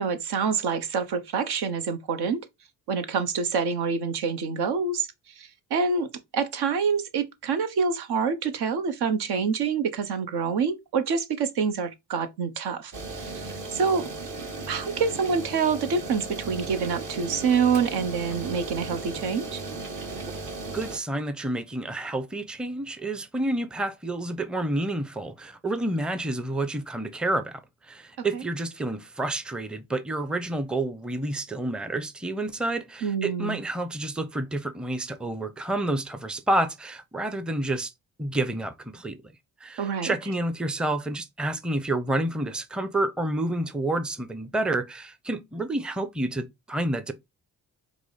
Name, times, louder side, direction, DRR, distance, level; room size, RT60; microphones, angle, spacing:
voice 1, 0.0-2.4 2.9-5.1 5.4-6.1 6.3-12.9 13.2-14.1 14.7-19.6 28.2-28.4 33.0-33.6 39.8-40.1, right 5 dB, 70° right, 0.8 m, -26 dB
sound 1, 12.9-21.0, right 3 dB, 50° right, 1.2 m, -36 dB
voice 2, 20.7-37.9 38.2-39.2 39.6-47.1, right 1 dB, ahead, 0.5 m, -29 dB
4.9 x 2.0 x 3.9 m
supercardioid pair, 45°, 41 cm